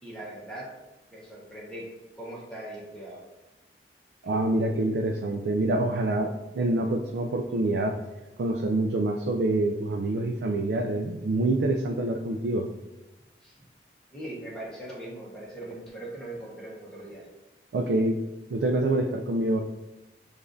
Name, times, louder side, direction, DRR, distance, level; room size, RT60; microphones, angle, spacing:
voice 1, 0.0-0.7 1.1-1.8 2.2-3.2 13.4-13.6 14.1-17.3, right 1 dB, 5° left, -6 dB, 0.9 m, -40 dB
voice 2, 4.2-8.0 8.4-12.7 17.7-18.2 18.5-19.6, right 2 dB, 70° right, 3 dB, 0.3 m, -26 dB
6.7 x 2.4 x 2.6 m, 1.0 s
head